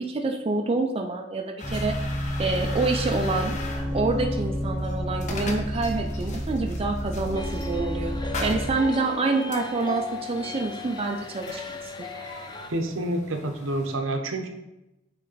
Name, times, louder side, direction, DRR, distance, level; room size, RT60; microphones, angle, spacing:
voice 1, 0.0-2.0 2.4-3.6 3.9-11.8 12.1-12.3, right 3 dB, 30° right, 3 dB, 0.4 m, -27 dB
sound 1, 1.6-14.0, left 3 dB, 35° left, 0.9 m, -41 dB
sound 2, 1.6-8.7, equal, 5° left, 1.0 m, -30 dB
sound 3, 7.3-12.7, left 4 dB, 20° left, 0.5 m, -37 dB
voice 2, 12.7-14.5, right 1 dB, 75° right, 5 dB, 0.8 m, -28 dB
8.2 x 3.3 x 4.0 m, 0.92 s
head